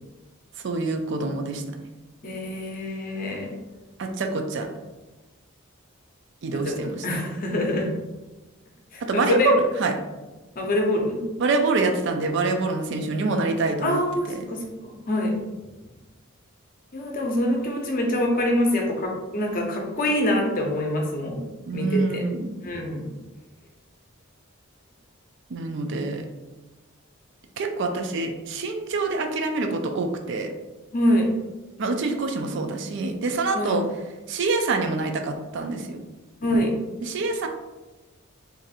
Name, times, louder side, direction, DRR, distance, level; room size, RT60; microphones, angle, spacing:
voice 1, 0.6-1.6 4.0-4.7 6.4-7.1 9.1-9.9 11.4-14.0 21.7-22.5 25.5-26.3 27.6-30.5 31.8-33.8 34.3-36.0 37.0-37.5, right 3 dB, 60° right, 5 dB, 0.4 m, -25 dB
voice 2, 2.2-3.5 6.6-7.9 8.9-9.5 10.6-11.2 13.8-15.3 16.9-21.4 21.7-22.2 22.6-23.1 30.9-31.3 33.5-33.8 36.4-36.7, left 1 dB, 40° left, 1 dB, 0.6 m, -25 dB
2.6 x 2.5 x 4.0 m, 1.1 s
head